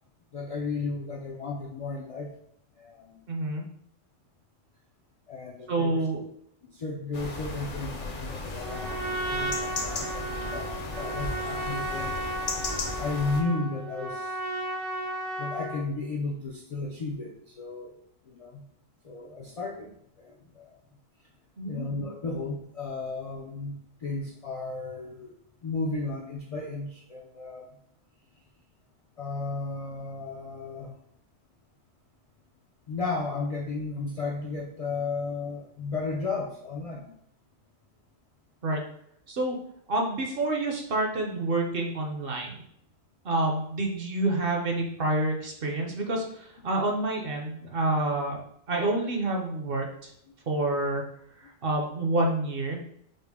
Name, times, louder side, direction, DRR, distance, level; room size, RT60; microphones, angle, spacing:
voice 1, 0.3-2.3 2.8-3.2 5.3-6.0 6.6-12.2 13.0-14.4 15.4-17.9 18.3-18.7 19.0-20.7 21.7-25.3 25.6-27.7 29.2-30.9 32.9-37.1, left 3 dB, 70° left, -1 dB, 0.3 m, -34 dB
voice 2, 3.3-3.6 5.7-6.2 21.6-21.9 38.6-38.8 39.3-39.5 39.9-42.5 43.2-48.4 48.7-50.1 50.5-51.0 51.4-52.8, right 2 dB, 55° right, 1 dB, 0.8 m, -28 dB
sound 1, 7.1-13.4, left 3 dB, 50° left, 0.7 m, -35 dB
Trumpet, 8.5-15.9, right 1 dB, 90° right, 1.4 m, -34 dB
5.2 x 2.1 x 3.5 m, 0.71 s
omnidirectional pair, 1.3 m